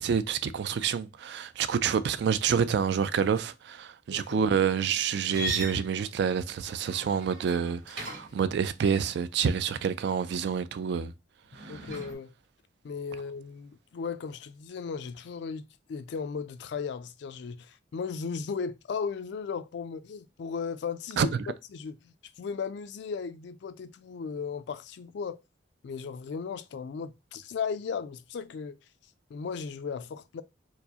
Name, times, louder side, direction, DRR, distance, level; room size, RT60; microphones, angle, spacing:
voice 1, 0.0-11.1 11.6-11.9 21.2-21.4, right 7 dB, 60° right, 0.3 m, -28 dB
voice 2, 4.1-4.4 11.7-12.3 12.8-25.4 25.8-28.8 29.3-30.4, left 5 dB, 60° left, 0.3 m, -36 dB
sound 1, 5.3-8.5 11.5-12.1, right 1 dB, 75° right, 2.0 m, -39 dB
4.5 x 2.0 x 2.7 m
head